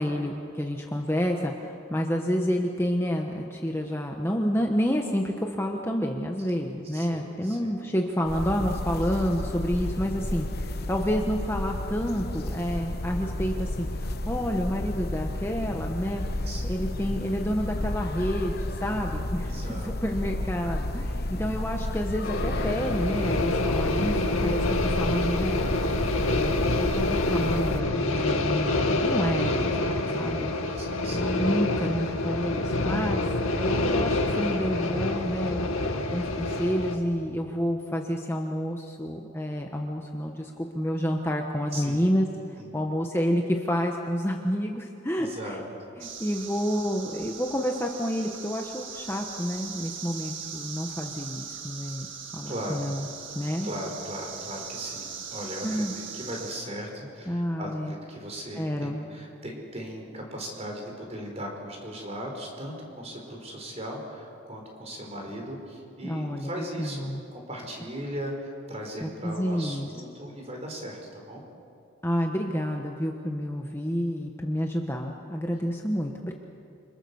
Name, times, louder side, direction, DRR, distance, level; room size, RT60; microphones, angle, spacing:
voice 1, 0.0-16.2 16.6-25.6 26.1-29.7 30.1-30.5 31.1-35.6 36.1-42.3 42.7-45.6 46.0-52.1 52.3-53.1 53.3-53.7 55.6-55.9 57.3-57.9 58.6-59.0 66.0-67.2 69.0-69.9 72.0-76.4, equal, 10° left, 1 dB, 1.3 m, -29 dB
voice 2, 6.9-7.8 16.4-16.9 19.4-20.0 21.0-21.5 28.6-29.0 29.4-29.6 29.9-31.4 41.7-42.1 42.6-42.7 45.2-45.8 52.4-52.8 53.6-71.4, equal, 30° right, 1 dB, 5.1 m, -38 dB
sound 1, 8.3-27.8, left 1 dB, 45° left, 1.0 m, -32 dB
sound 2, 22.2-37.0, left 2 dB, 85° left, 2.3 m, -27 dB
sound 3, 46.0-56.5, right 6 dB, 60° right, 2.2 m, -40 dB
29.0 x 26.0 x 7.2 m, 2.6 s
head